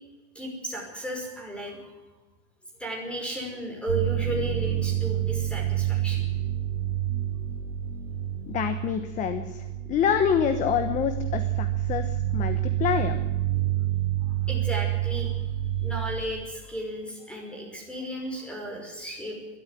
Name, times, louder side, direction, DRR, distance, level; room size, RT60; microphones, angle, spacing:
voice 1, 0.3-1.9 2.8-6.2 14.5-15.4 15.8-19.4, right 1 dB, 5° left, 0 dB, 5.6 m, -34 dB
sound 1, 3.9-16.3, right 12 dB, 70° right, 2.0 m, -28 dB
voice 2, 8.5-13.1, left 8 dB, 20° left, 10 dB, 1.1 m, -27 dB
22.0 x 13.0 x 10.0 m, 1.1 s
supercardioid pair, 160°, 38 cm